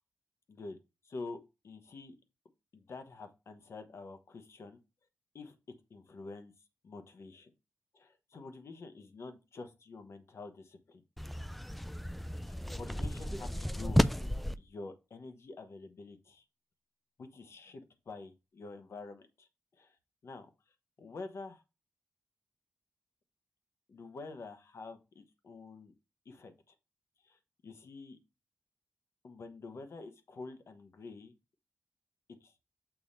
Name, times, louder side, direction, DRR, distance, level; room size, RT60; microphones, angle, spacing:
voice 1, 1.0-1.4 1.6-2.1 2.7-4.8 5.3-5.6 5.9-6.5 6.8-7.5 7.9-11.0 12.5-14.1 14.6-16.4 17.2-19.5 19.8-20.0 20.2-20.5 21.0-21.6 23.9-25.9 26.2-26.5 27.2-28.2 29.2-31.3 32.4-32.5, left 3 dB, 70° left, 8 dB, 1.1 m, -47 dB
sound 1, 11.2-14.6, equal, ahead, 0.3 m, -32 dB
6.9 x 2.9 x 5.4 m, 0.28 s
cardioid pair, 80°, 5 cm